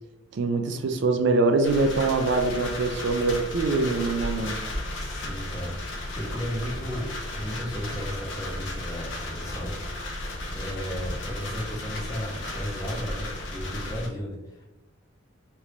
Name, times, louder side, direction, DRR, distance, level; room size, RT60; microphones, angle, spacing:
voice 1, 0.3-4.6, right 3 dB, 60° right, 6 dB, 0.3 m, -24 dB
sound 1, 1.6-14.1, left 1 dB, 60° left, 0.6 m, -34 dB
voice 2, 4.9-14.6, equal, 20° left, -3 dB, 0.8 m, -35 dB
3.3 x 2.5 x 2.9 m, 0.99 s
head